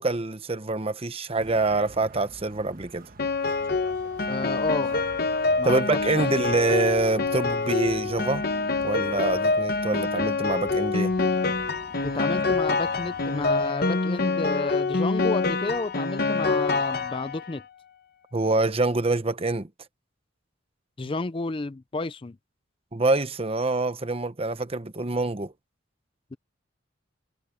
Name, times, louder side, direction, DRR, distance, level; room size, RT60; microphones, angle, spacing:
voice 1, 0.0-3.1 5.6-8.4 8.8-11.1 18.3-19.7 22.9-25.5, right 2 dB, 30° right, 1.0 m, -25 dB
sound 1, 1.4-13.7, right 2 dB, 45° right, 1.3 m, -46 dB
Piano, 3.2-17.6, left 3 dB, 50° left, 1.0 m, -26 dB
voice 2, 4.3-5.1 5.6-6.2 12.0-17.6 21.0-22.4, left 3 dB, 25° left, 0.5 m, -31 dB
head